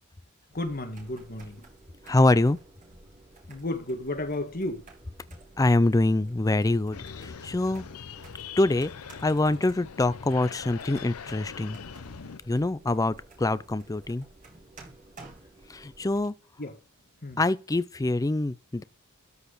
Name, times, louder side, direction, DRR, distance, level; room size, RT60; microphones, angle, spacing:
voice 1, 0.5-1.6 3.5-4.8 16.6-16.7 17.2-17.4, left 1 dB, 40° left, 1.7 m, -33 dB
sound 1, 0.5-16.3, right 2 dB, 35° right, 3.2 m, -52 dB
voice 2, 2.1-2.6 5.6-7.8 8.6-8.9 9.2-11.8 12.5-14.3 15.7-16.3 17.4-18.8, left 2 dB, 15° left, 0.4 m, -25 dB
sound 2, 6.9-12.4, left 6 dB, 90° left, 0.7 m, -42 dB
13.0 x 4.8 x 5.0 m
head